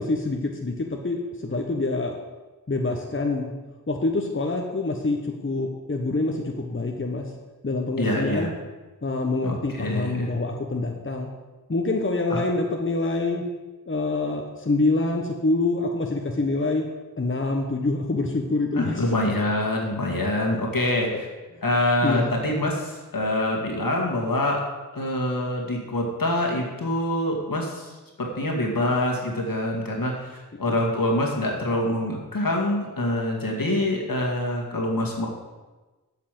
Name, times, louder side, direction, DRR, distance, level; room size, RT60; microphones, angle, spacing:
voice 1, 0.0-2.2 2.7-3.5 3.9-7.3 7.6-8.5 9.0-11.3 11.7-13.4 13.9-16.9 17.1-19.0 22.0-22.4 30.7-30.8, left 2 dB, 35° left, 1 dB, 1.2 m, -26 dB
voice 2, 8.0-8.5 9.4-10.3 12.3-12.4 18.8-21.3 21.6-24.6 24.9-35.3, left 1 dB, 70° left, -1 dB, 2.3 m, -25 dB
8.5 x 5.8 x 7.7 m, 1.2 s
cardioid pair, 40°, 35 cm